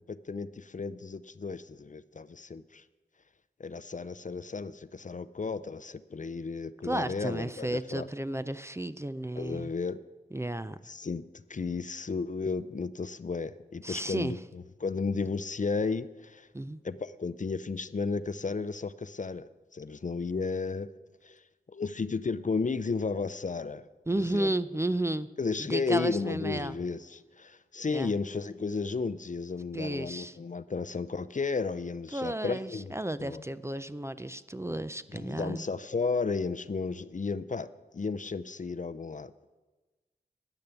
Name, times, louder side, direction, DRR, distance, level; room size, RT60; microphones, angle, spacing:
voice 1, 0.1-2.8 3.6-8.1 9.4-10.0 10.9-16.5 16.8-20.9 21.2-21.4 21.7-23.8 24.1-24.5 25.4-33.4 35.1-37.7 37.9-39.3, left 4 dB, 45° left, 14 dB, 0.5 m, -33 dB
voice 2, 6.8-9.7 10.3-10.8 13.8-14.4 16.5-16.8 24.1-25.3 25.6-26.8 27.9-28.1 29.7-30.4 32.1-35.7, right 1 dB, 15° right, 13 dB, 0.4 m, -33 dB
10.5 x 10.0 x 6.8 m, 1.2 s
wide cardioid pair, 60°, 17 cm